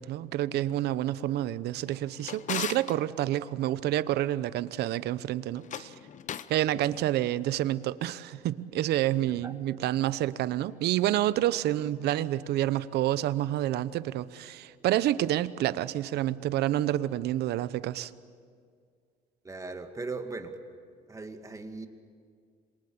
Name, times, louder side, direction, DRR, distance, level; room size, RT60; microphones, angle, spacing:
voice 1, 0.0-5.9 6.5-18.1, right 13 dB, 75° right, 15 dB, 0.9 m, -28 dB
Drawer open or close, 1.8-3.0 5.5-6.6, left 9 dB, 45° left, 0.9 m, -38 dB
voice 2, 19.4-20.6 21.1-21.9, right 3 dB, 20° right, 5 dB, 2.2 m, -38 dB
27.0 x 23.5 x 8.7 m, 2.1 s
cardioid pair, 110°, 17 cm